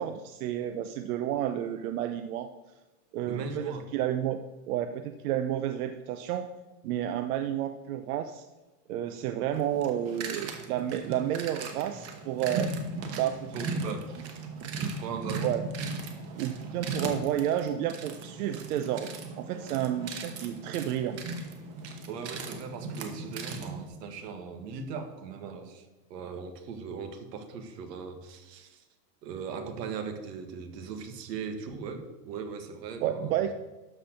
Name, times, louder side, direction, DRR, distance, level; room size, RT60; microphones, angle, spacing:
voice 1, 0.0-2.5 3.1-4.4 4.7-6.5 6.8-8.4 8.9-12.7 13.1-13.5 13.8-14.0 15.4-15.6 16.3-21.2 33.0-33.5, right 11 dB, 65° right, 8 dB, 0.7 m, -31 dB
voice 2, 3.2-3.8 13.5-14.1 15.0-15.5 22.1-25.8 26.1-28.8 29.2-33.3, right 5 dB, 80° right, 7 dB, 1.7 m, -39 dB
sound 1, 9.5-23.9, right 4 dB, 30° right, 1.1 m, -37 dB
12.0 x 4.4 x 6.5 m, 1.1 s
supercardioid pair, 165°, 48 cm